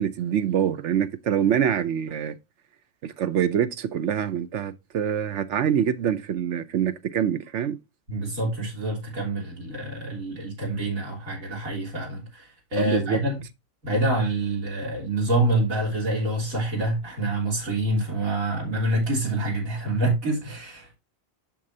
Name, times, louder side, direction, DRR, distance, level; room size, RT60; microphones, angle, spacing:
voice 1, 0.0-2.4 3.0-7.8 12.8-13.2, right 9 dB, 65° right, 0.9 m, -25 dB
voice 2, 8.1-13.3 13.8-21.0, right 1 dB, 85° right, 3.6 m, -26 dB
8.6 x 6.1 x 2.7 m
omnidirectional pair, 1.4 m